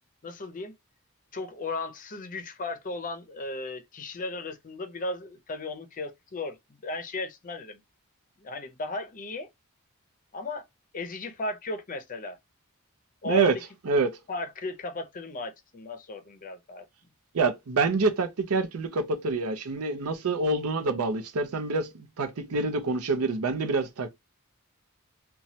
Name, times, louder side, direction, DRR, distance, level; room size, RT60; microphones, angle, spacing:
voice 1, 0.2-0.7 1.3-7.8 8.4-9.5 10.3-10.6 10.9-12.4 13.2-13.6 14.3-16.8, left 2 dB, 40° left, 0.5 m, -35 dB
voice 2, 13.9-14.2 17.3-24.1, right 3 dB, 85° right, 0.6 m, -26 dB
3.0 x 2.2 x 2.7 m
head